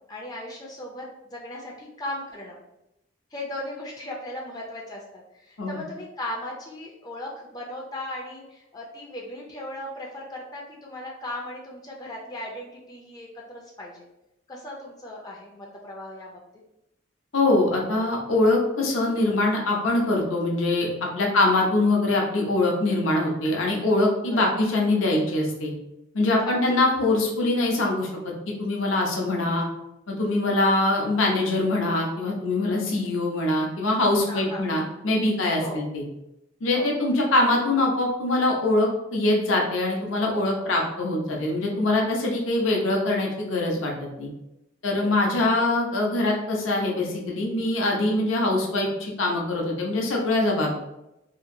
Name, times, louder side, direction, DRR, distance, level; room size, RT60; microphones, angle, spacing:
voice 1, 0.1-2.6 3.3-14.1 14.5-16.4 21.3-21.4 24.3-24.4 26.5-26.8 30.4-30.7 34.3-34.7 35.6-35.8 36.7-36.9 45.0-45.6, left 1 dB, 20° left, -1 dB, 0.4 m, -37 dB
voice 2, 17.3-25.7 26.1-28.1 28.5-29.6 30.1-36.0 36.6-44.3 44.8-50.8, left 2 dB, 75° left, -1 dB, 0.6 m, -23 dB
2.8 x 2.5 x 2.5 m, 0.89 s
head